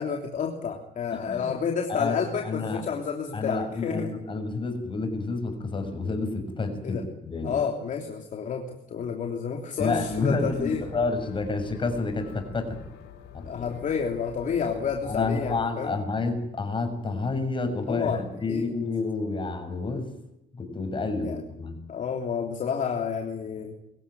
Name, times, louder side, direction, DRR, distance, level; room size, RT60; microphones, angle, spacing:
voice 1, 0.0-4.1 6.8-7.0 7.4-10.8 13.4-16.0 17.9-18.7 21.2-21.4 21.9-23.7, left 6 dB, 50° left, 3 dB, 3.2 m, -30 dB
voice 2, 1.1-1.5 1.9-2.2 2.4-2.8 3.3-7.6 9.8-12.8 13.3-13.5 15.0-20.1 20.5-21.8, left 3 dB, 30° left, 6 dB, 7.0 m, -29 dB
sound 1, 9.8-15.7, left 9 dB, 85° left, 4.1 m, -46 dB
24.0 x 16.0 x 9.4 m, 0.83 s
cardioid pair, 110°, 17 cm